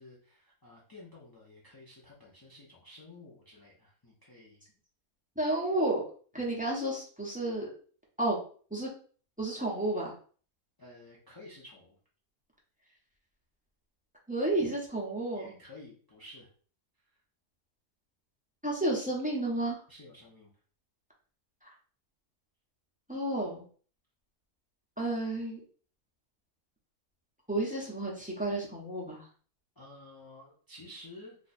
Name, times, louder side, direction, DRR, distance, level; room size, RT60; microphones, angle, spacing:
voice 1, 0.0-4.6 6.4-6.5 10.8-12.0 15.3-16.5 19.9-20.5 29.8-31.3, left 2 dB, 35° left, -5 dB, 0.3 m, -52 dB
voice 2, 5.4-6.0 6.3-7.7 8.2-8.4 8.7-8.9 9.4-10.1 14.3-15.6 18.6-19.8 21.6-21.7 23.1-23.6 25.0-25.6 27.5-29.3, right 1 dB, 5° right, -3 dB, 0.8 m, -31 dB
2.8 x 2.4 x 4.1 m, 0.43 s
omnidirectional pair, 1.6 m